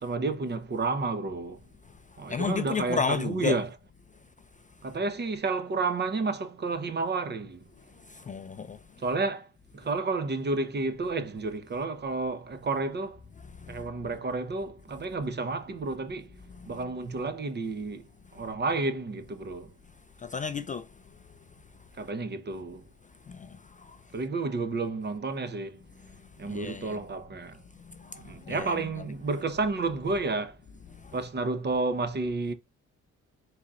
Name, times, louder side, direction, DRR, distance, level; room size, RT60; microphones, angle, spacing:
voice 1, 0.0-1.6 2.2-3.7 4.8-7.7 9.0-9.5 9.7-13.2 13.7-16.3 16.6-18.0 18.3-19.7 22.0-22.8 24.1-25.8 26.4-27.6 28.1-30.6 31.1-32.5, right 3 dB, 35° right, 0.8 m, -31 dB
voice 2, 2.3-3.6 8.3-8.8 13.7-13.8 20.2-20.8 23.3-23.5 26.5-27.0 28.0-28.2 28.5-28.8, left 5 dB, 25° left, 0.3 m, -31 dB
4.1 x 3.9 x 2.4 m
cardioid pair, 90°, 30 cm